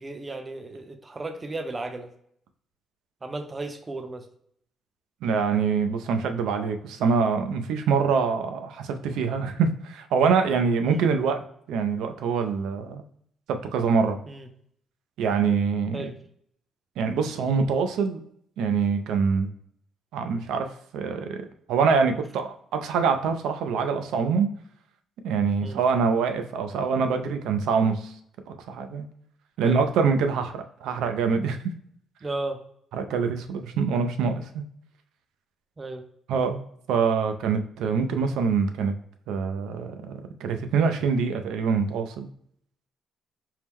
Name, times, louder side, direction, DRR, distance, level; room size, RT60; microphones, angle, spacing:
voice 1, 0.0-2.1 3.2-4.3 10.9-11.1 14.3-14.5 15.9-16.1 25.6-25.8 29.6-29.8 32.2-32.6 35.8-36.0, right 2 dB, 25° right, 6 dB, 0.6 m, -34 dB
voice 2, 5.2-11.4 11.7-13.0 13.5-14.2 15.2-16.1 17.0-18.2 18.6-19.5 20.1-20.7 20.9-24.5 25.2-28.1 28.5-29.1 29.6-31.6 32.9-34.6 36.3-36.6 36.9-38.9 39.3-40.1 40.4-42.3, right 5 dB, 85° right, 7 dB, 0.5 m, -25 dB
4.5 x 2.1 x 3.5 m, 0.68 s
cardioid pair, 90°, 0 cm